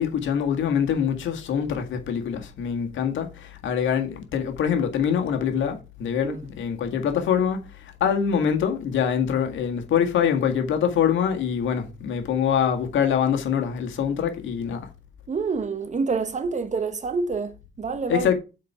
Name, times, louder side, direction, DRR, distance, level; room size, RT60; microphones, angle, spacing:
voice 1, 0.0-7.6 8.0-14.8 18.1-18.3, left 8 dB, 75° left, 1.8 m, -24 dB
voice 2, 15.3-18.3, right 4 dB, 35° right, 1.1 m, -27 dB
7.6 x 4.4 x 5.6 m
cardioid pair, 90°, 20 cm